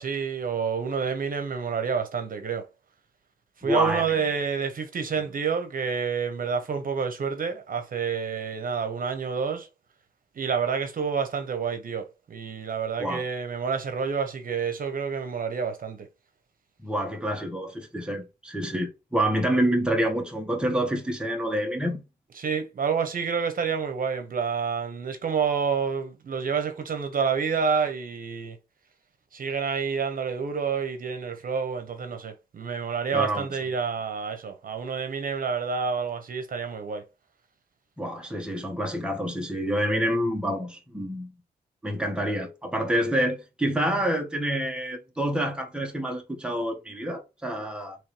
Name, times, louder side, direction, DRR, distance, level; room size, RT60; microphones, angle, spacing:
voice 1, 0.0-2.7 3.6-9.7 10.4-16.1 22.4-28.6 29.3-37.0, right 6 dB, 60° right, 1.0 m, -28 dB
voice 2, 3.6-4.1 5.1-5.2 13.0-13.2 16.8-22.0 33.1-33.6 38.0-41.3 41.8-48.0, right 1 dB, 5° right, 1.3 m, -27 dB
4.4 x 3.2 x 3.3 m
cardioid pair, 90°, 17 cm